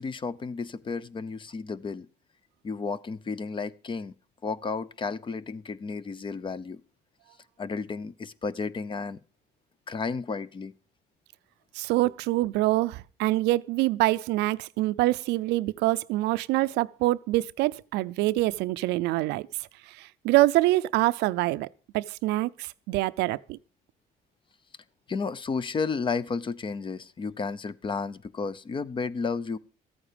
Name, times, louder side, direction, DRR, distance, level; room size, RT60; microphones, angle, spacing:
voice 1, 0.0-2.1 2.6-4.1 4.4-6.8 7.6-9.2 9.9-10.7 25.1-29.6, left 4 dB, 30° left, 0.7 m, -32 dB
voice 2, 11.7-19.5 20.0-21.7 21.9-23.6, right 18 dB, 90° right, 0.5 m, -25 dB
14.0 x 8.8 x 5.1 m
cardioid pair, 110°, 17 cm